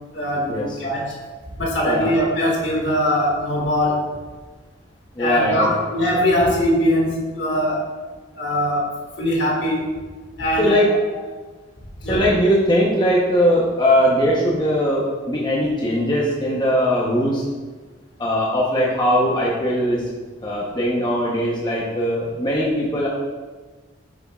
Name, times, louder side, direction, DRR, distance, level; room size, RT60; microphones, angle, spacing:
voice 1, 0.1-1.1 1.6-4.1 5.2-7.8 8.4-8.9 9.2-9.9 10.4-10.9 11.1-11.2 12.0-12.2, left 1 dB, 65° left, -2 dB, 1.9 m, -21 dB
voice 2, 5.1-5.8 10.6-10.9 12.1-17.5 18.2-20.0 20.4-23.1, equal, 25° left, -4 dB, 0.9 m, -20 dB
8.9 x 6.9 x 2.4 m, 1.3 s
head